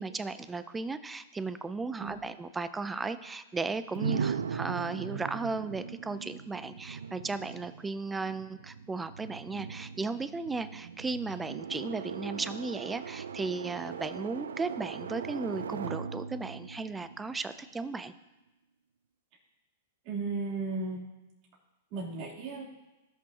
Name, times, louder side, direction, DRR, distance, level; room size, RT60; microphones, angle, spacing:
voice 1, 0.0-18.1, right 3 dB, 10° right, 13 dB, 0.5 m, -35 dB
sound 1, 3.9-17.8, right 6 dB, 85° right, 0.4 m, -39 dB
voice 2, 20.0-21.1 21.9-22.6, right 3 dB, 45° right, -4 dB, 3.4 m, -35 dB
18.0 x 6.1 x 2.9 m, 1.0 s
hypercardioid pair, 120°, 0 cm